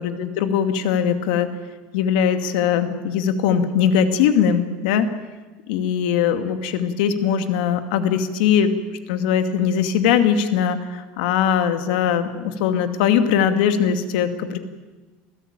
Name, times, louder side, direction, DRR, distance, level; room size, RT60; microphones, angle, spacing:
voice 1, 0.0-1.5 1.9-5.1 5.7-8.7 9.1-14.6, left 8 dB, 85° left, 8 dB, 2.4 m, -20 dB
27.5 x 16.5 x 9.0 m, 1.2 s
cardioid pair, 165°, 4 cm